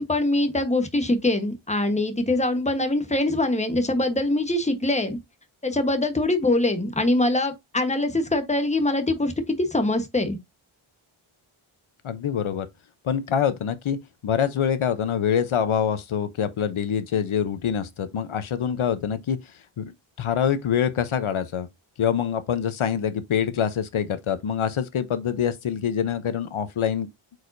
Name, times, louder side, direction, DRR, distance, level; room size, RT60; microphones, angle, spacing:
voice 1, 0.0-5.2 5.6-10.4, left 2 dB, 15° left, 1.2 m, -23 dB
voice 2, 12.0-12.7 13.0-14.0 14.2-19.4 19.8-21.7 22.0-27.1, left 8 dB, 75° left, 0.9 m, -25 dB
8.1 x 4.9 x 2.7 m
wide cardioid pair, 140°, 50 cm